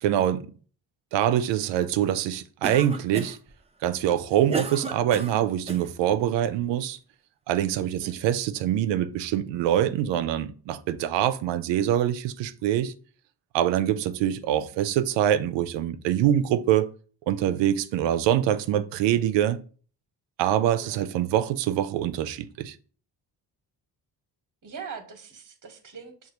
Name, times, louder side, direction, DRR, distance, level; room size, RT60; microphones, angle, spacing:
voice 1, 0.0-0.5 1.1-3.4 3.8-7.0 7.5-12.9 13.5-16.9 17.3-19.6 20.4-22.7, right 11 dB, 80° right, 0.5 m, -24 dB
Cough, 2.6-3.5 4.1-5.9, right 3 dB, 15° right, 0.5 m, -34 dB
voice 2, 7.8-8.2 14.6-14.9 20.8-21.1 24.6-26.3, right 6 dB, 45° right, 1.1 m, -42 dB
6.3 x 2.4 x 2.9 m
cardioid pair, 90°, 43 cm